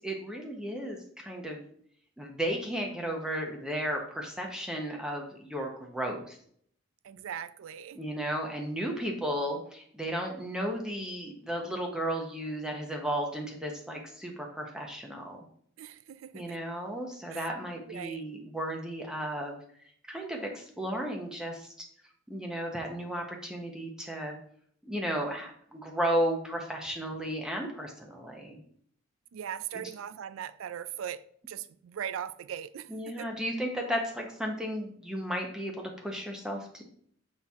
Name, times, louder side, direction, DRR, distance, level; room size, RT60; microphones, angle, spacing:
voice 1, 0.0-1.7 2.2-6.4 7.9-15.4 16.3-19.6 20.1-21.7 22.3-24.4 24.8-28.6 32.9-36.8, equal, 5° right, 0.8 m, -34 dB
voice 2, 7.0-8.0 15.8-16.6 17.3-17.5 17.9-18.2 29.3-33.3, right 9 dB, 80° right, 0.4 m, -40 dB
7.6 x 4.3 x 3.5 m
head